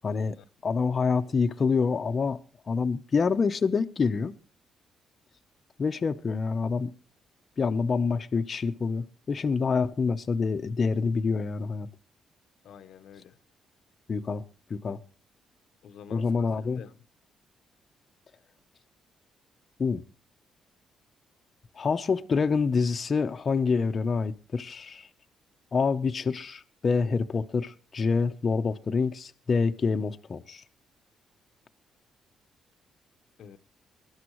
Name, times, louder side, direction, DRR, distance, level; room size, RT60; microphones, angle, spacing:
voice 1, 0.0-0.4 0.6-2.4 2.7-4.3 5.8-6.9 7.6-11.9 14.1-14.4 14.7-15.0 16.1-16.8 19.8-20.0 21.7-25.1 25.7-30.6, left 5 dB, 40° left, 0.8 m, -27 dB
voice 2, 12.6-13.4 15.8-17.0 33.4-33.6, left 8 dB, 70° left, 0.8 m, -48 dB
21.0 x 12.0 x 3.1 m
cardioid pair, 90°, 0 cm